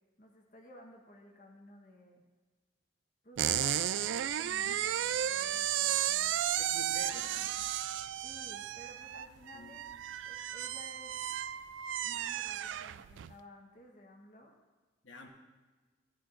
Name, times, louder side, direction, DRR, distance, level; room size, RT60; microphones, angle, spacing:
voice 1, 0.2-2.2 3.2-6.4 8.1-9.9 10.2-11.2 12.0-14.6, left 1 dB, 40° left, 0 dB, 1.1 m, -55 dB
sound 1, 3.4-13.3, right 11 dB, 75° right, 0.3 m, -34 dB
voice 2, 6.6-7.6 9.5-9.8 15.0-15.3, left 3 dB, 80° left, 1 dB, 1.1 m, -49 dB
14.0 x 10.0 x 2.5 m, 1.4 s
head